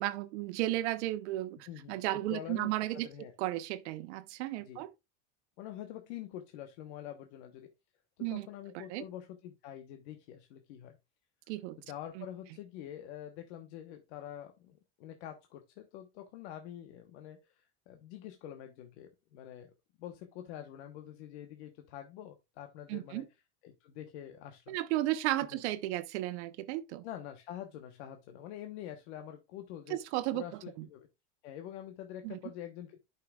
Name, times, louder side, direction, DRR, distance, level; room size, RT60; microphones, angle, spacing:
voice 1, 0.0-3.1 3.4-4.9 8.2-8.5 8.9-9.0 11.5-11.8 12.2-12.3 22.9-23.2 24.7-27.0 29.9-30.4 30.8-30.9 32.2-32.4, right 16 dB, 85° right, 0.9 m, -34 dB
voice 2, 1.7-3.3 4.7-4.8 5.6-7.7 8.2-11.0 11.8-19.7 20.0-23.2 23.6-24.8 25.5-25.6 27.0-30.0 30.3-31.1 31.4-33.0, left 11 dB, 75° left, 1.2 m, -46 dB
11.5 x 5.7 x 2.3 m
cardioid pair, 170°, 33 cm